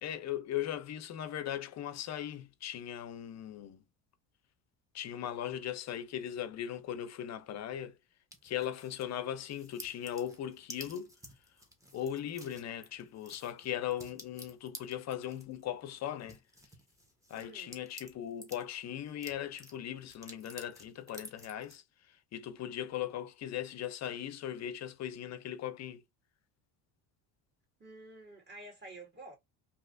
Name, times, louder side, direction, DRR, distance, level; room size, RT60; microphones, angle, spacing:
voice 1, 0.0-3.8 4.9-8.0 8.4-11.1 11.9-16.4 17.3-26.0, left 10 dB, 40° left, 0.5 m, -39 dB
sound 1, 8.3-9.1 9.5-18.6 19.0-21.8, equal, 10° right, 0.9 m, -52 dB
voice 2, 17.3-17.8 27.8-29.4, right 2 dB, 25° right, 1.9 m, -50 dB
3.1 x 2.9 x 2.5 m
supercardioid pair, 105°, 41 cm